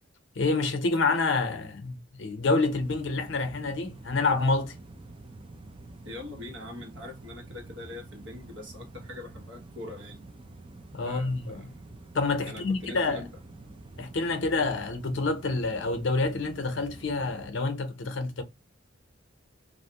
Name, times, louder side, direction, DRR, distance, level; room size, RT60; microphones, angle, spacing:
voice 1, 0.4-4.7 10.9-11.7 12.1-13.2 14.0-18.4, left 3 dB, 70° left, 0.7 m, -28 dB
sound 1, 2.6-17.5, right 2 dB, 25° right, 0.4 m, -47 dB
voice 2, 6.0-10.2 11.0-11.7 12.4-13.3, left 2 dB, 70° right, 1.1 m, -42 dB
2.5 x 2.0 x 2.8 m
head